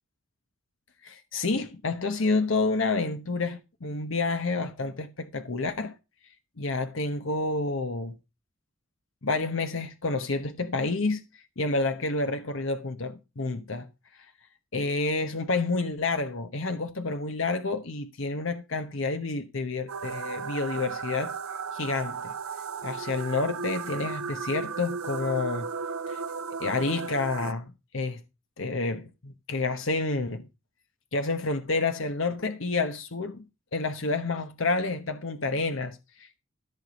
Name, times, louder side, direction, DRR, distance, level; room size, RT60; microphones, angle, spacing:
voice 1, 1.0-6.0 6.6-8.1 9.2-11.2 11.6-13.9 14.7-21.4 21.7-22.3 22.8-25.7 26.1-26.2 26.6-28.2 28.6-30.5 31.1-33.4 33.7-36.4, left 3 dB, 65° left, 1.1 m, -29 dB
sound 1, 19.9-27.5, right 5 dB, 90° right, 0.6 m, -35 dB
14.0 x 6.1 x 5.2 m
head